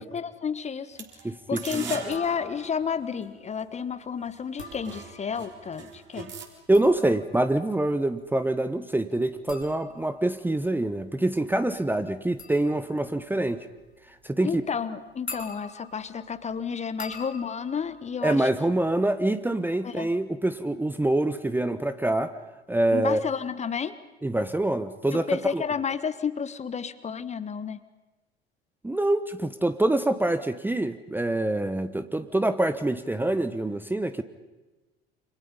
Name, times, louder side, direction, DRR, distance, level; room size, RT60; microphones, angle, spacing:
voice 1, 0.0-1.1 1.5-6.3 14.4-18.5 19.8-20.1 22.9-24.0 25.1-27.8, left 6 dB, 20° left, 14 dB, 1.3 m, -31 dB
sound 1, 0.9-3.6 4.2-4.3 4.6-6.5, right 6 dB, 35° right, 3.9 m, -41 dB
voice 2, 1.2-2.0 6.7-13.7 14.1-14.6 18.2-22.4 22.7-23.2 24.2-25.6 28.8-34.2, right 1 dB, 5° right, 11 dB, 1.1 m, -25 dB
sound 2, 2.1-2.9 4.4-5.5 6.5-19.2 19.5-20.0, left 3 dB, 90° left, 3.7 m, -46 dB
28.5 x 26.5 x 5.4 m, 1.1 s
figure-of-eight pair, 70°, 32 cm